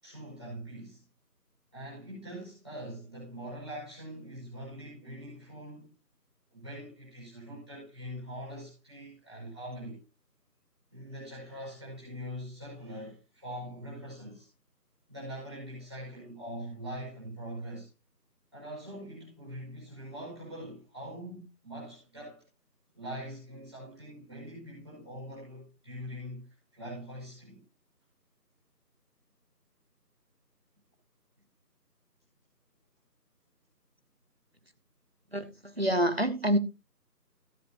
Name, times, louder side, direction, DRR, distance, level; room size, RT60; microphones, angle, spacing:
voice 1, 0.0-1.0 1.7-5.9 6.5-10.0 10.9-14.5 15.1-17.9 18.5-22.4 22.9-26.5 26.7-27.6, equal, ahead, 4.3 m, -43 dB
voice 2, 35.3-36.6, equal, 40° right, 1.2 m, -27 dB
16.0 x 8.1 x 2.6 m
figure-of-eight pair, 180°, 49 cm